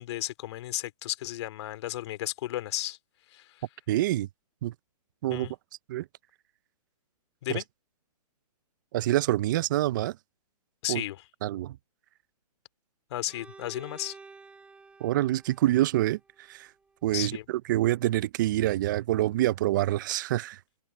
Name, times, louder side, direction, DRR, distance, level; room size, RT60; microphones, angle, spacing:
voice 1, 0.0-3.0 3.3-3.6 5.3-5.5 7.4-7.6 10.8-11.2 13.1-14.2 17.1-17.4, left 14 dB, 45° left, 2.6 m, -34 dB
voice 2, 3.9-4.3 4.6-4.7 5.2-5.5 5.9-6.1 7.5-7.6 8.9-10.2 10.9-11.0 11.4-11.8 15.0-16.7 17.0-20.6, right 15 dB, 30° right, 0.5 m, -26 dB
Bowed string instrument, 13.3-17.1, right 4 dB, 5° right, 2.4 m, -52 dB
hypercardioid pair, 155°, 20 cm